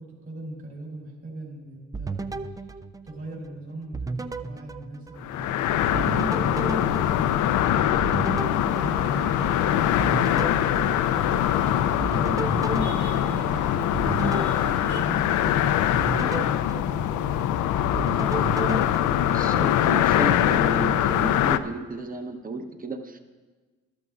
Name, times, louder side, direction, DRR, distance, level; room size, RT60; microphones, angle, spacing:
voice 1, 0.0-2.3 3.0-7.9 8.4-14.4 14.8-17.5, right 2 dB, 50° right, -3 dB, 3.7 m, -41 dB
sound 1, 1.9-3.5 3.9-5.6 5.9-9.6 10.0-11.6 12.0-15.5 15.9-17.6 17.9-19.9, right 3 dB, 10° right, 0.3 m, -34 dB
sound 2, 5.2-21.6, left 11 dB, 80° left, 0.5 m, -23 dB
sound 3, 8.7-15.0, right 3 dB, 75° right, 1.7 m, -40 dB
voice 2, 19.2-23.2, right 4 dB, 30° right, 6 dB, 1.0 m, -33 dB
13.5 x 12.0 x 2.5 m, 1.4 s
cardioid pair, 90°, 30 cm